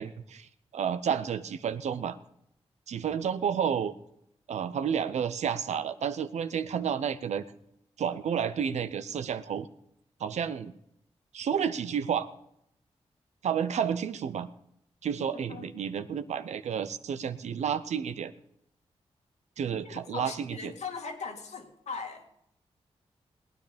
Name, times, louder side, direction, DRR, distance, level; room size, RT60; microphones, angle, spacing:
voice 1, 0.0-2.2 2.9-3.9 4.5-7.4 8.0-9.7 10.2-10.7 11.3-12.3 13.4-14.5 15.0-18.3 19.6-20.7, right 7 dB, 85° right, 12 dB, 0.7 m, -31 dB
voice 2, 19.9-22.2, left 5 dB, 80° left, 2 dB, 2.2 m, -39 dB
18.5 x 9.6 x 5.1 m, 0.76 s
cardioid pair, 60°, 11 cm